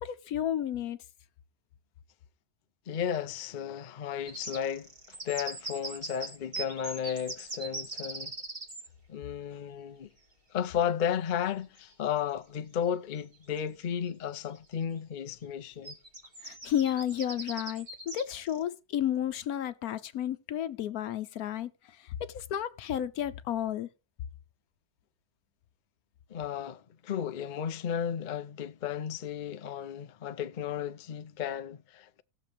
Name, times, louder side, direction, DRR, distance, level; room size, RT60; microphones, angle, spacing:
voice 1, 0.0-1.0 16.4-23.9, left 10 dB, 75° left, 1.2 m, -32 dB
voice 2, 2.9-8.3 9.1-10.1 10.5-15.9 26.3-32.2, left 8 dB, 60° left, 0.5 m, -34 dB
sound 1, 4.3-8.9 11.3-11.4 11.8-11.9 13.2-13.3 13.6-14.1 14.6-14.7 15.8-18.6, right 3 dB, 30° right, 2.0 m, -40 dB
18.5 x 6.8 x 3.4 m
omnidirectional pair, 1.6 m